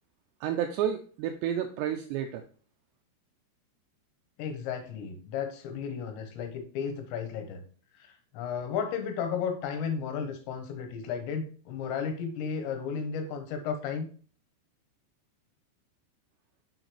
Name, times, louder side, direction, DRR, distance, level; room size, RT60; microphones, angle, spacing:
voice 1, 0.4-2.4, right 9 dB, 85° right, 6 dB, 2.4 m, -30 dB
voice 2, 4.4-7.6 7.9-14.1, left 6 dB, 80° left, 6 dB, 3.1 m, -34 dB
6.7 x 6.4 x 3.1 m, 0.42 s
omnidirectional pair, 5.5 m